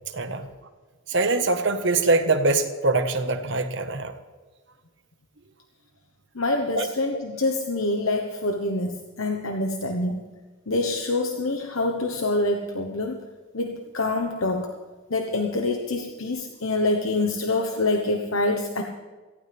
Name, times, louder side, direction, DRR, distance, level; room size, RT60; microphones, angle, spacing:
voice 1, 0.1-0.5 1.1-4.1 6.7-6.9, right 3 dB, 55° right, 6 dB, 1.4 m, -23 dB
voice 2, 6.3-10.3 10.7-13.2 13.5-14.7 15.1-18.8, left 2 dB, 70° left, 4 dB, 1.1 m, -26 dB
18.5 x 15.5 x 3.5 m, 1.4 s
head